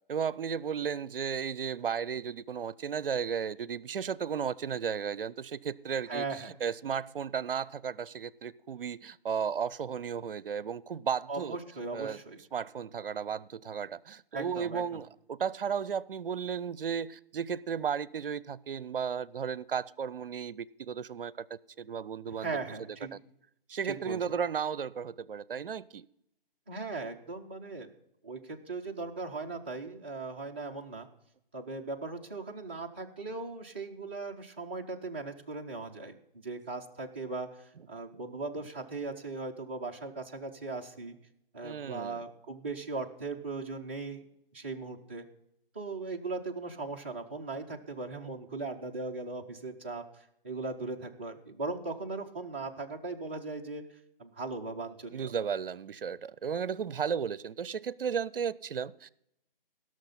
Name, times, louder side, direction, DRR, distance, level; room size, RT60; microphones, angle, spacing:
voice 1, 0.1-6.3 6.6-11.6 11.9-12.2 12.5-21.5 21.8-22.5 23.1-23.2 23.7-26.1 41.6-42.2 55.1-59.1, right 7 dB, 70° right, 0.5 m, -34 dB
voice 2, 6.1-6.5 11.3-12.4 14.3-14.9 22.3-23.2 23.8-24.4 26.7-27.9 28.2-31.1 31.5-41.2 41.5-44.2 44.5-45.3 45.7-55.3, right 3 dB, 10° right, 0.4 m, -38 dB
16.0 x 6.4 x 5.4 m
figure-of-eight pair, 145°, 29 cm